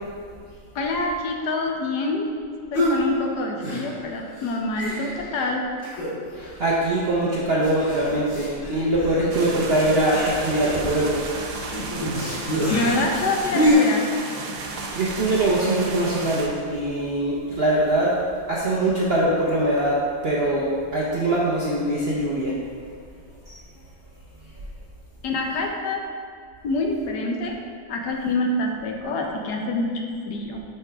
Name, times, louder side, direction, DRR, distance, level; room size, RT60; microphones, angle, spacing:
voice 1, 0.7-2.3 2.7-5.7 12.6-14.1 25.2-26.0 26.6-27.6 27.9-30.6, left 2 dB, 70° left, 1 dB, 1.3 m, -26 dB
sound 1, 2.7-3.0 3.6-4.1 4.4-4.5 4.8-5.3 5.8-6.3 6.6-6.7 7.6-13.7, equal, 50° left, 2.3 m, -27 dB
voice 2, 6.3-11.2 15.0-18.2 18.5-22.5 23.5-23.6, right 1 dB, 55° right, -5 dB, 0.7 m, -22 dB
sound 2, 9.3-16.5, right 3 dB, 70° right, 1.3 m, -34 dB
8.7 x 4.6 x 3.5 m, 2.2 s
omnidirectional pair, 1.9 m